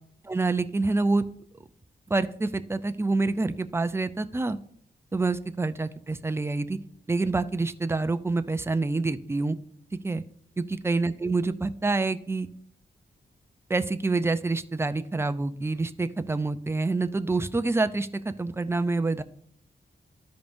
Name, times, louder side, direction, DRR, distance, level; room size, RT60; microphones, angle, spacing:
voice 1, 0.2-1.2 2.1-4.6 5.1-6.8 7.1-9.6 10.0-10.2 10.6-12.5 13.7-19.2, right 3 dB, 15° right, 10 dB, 0.4 m, -27 dB
13.5 x 5.2 x 2.6 m, 0.64 s
wide cardioid pair, 100°, 17 cm